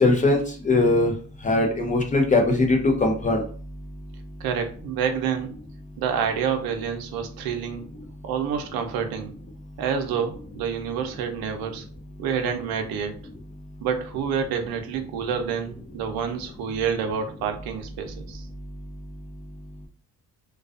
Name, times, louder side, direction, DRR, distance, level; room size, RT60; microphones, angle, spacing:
voice 1, 0.0-1.1 1.4-3.4, left 2 dB, 25° left, 2 dB, 0.3 m, -20 dB
voice 2, 4.4-5.5 6.0-7.8 8.2-9.3 9.8-11.8 12.2-13.1 13.8-18.5, right 7 dB, 80° right, 5 dB, 0.6 m, -28 dB
2.4 x 2.3 x 2.4 m, 0.42 s
cardioid pair, 145°, 36 cm